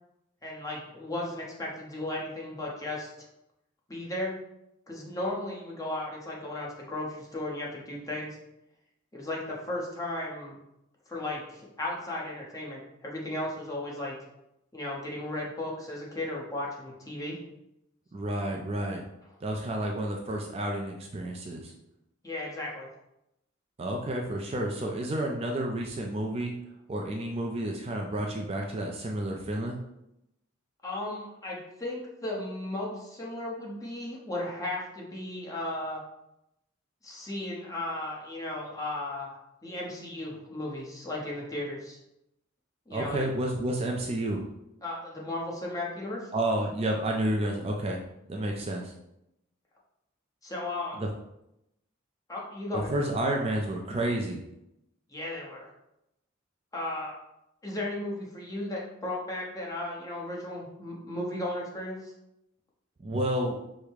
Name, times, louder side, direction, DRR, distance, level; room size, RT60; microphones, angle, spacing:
voice 1, 0.4-3.1 3.9-4.3 4.9-8.4 9.1-10.5 11.1-14.2 14.7-17.4 22.2-22.9 30.8-36.0 37.0-42.0 42.9-43.3 44.8-46.3 50.4-51.0 52.3-52.9 55.1-55.7 56.7-57.1 57.6-62.1, left 1 dB, 15° left, -3 dB, 1.0 m, -35 dB
voice 2, 18.1-19.0 19.4-21.7 23.8-26.5 26.9-29.8 42.9-44.4 46.3-48.0 48.3-48.9 51.0-51.1 52.7-54.4 63.0-63.5, right 1 dB, 30° right, 0 dB, 0.4 m, -30 dB
5.0 x 2.1 x 4.7 m, 0.85 s
head